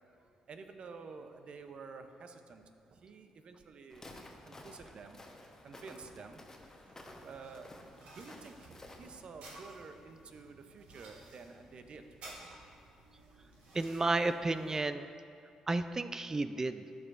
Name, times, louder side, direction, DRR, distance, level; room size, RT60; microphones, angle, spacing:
voice 1, 0.2-2.6 2.9-4.1 4.4-5.2 5.6-12.5, right 4 dB, 55° right, 7 dB, 0.6 m, -51 dB
Walk footsteps, 3.9-9.3, left 1 dB, 25° left, 0.9 m, -53 dB
sound 1, 6.9-14.8, right 1 dB, 75° right, 1.6 m, -56 dB
voice 2, 13.7-15.1 15.7-16.8, right 2 dB, 25° right, 11 dB, 0.3 m, -32 dB
13.0 x 4.8 x 2.5 m, 2.5 s
supercardioid pair, 60°, 2 cm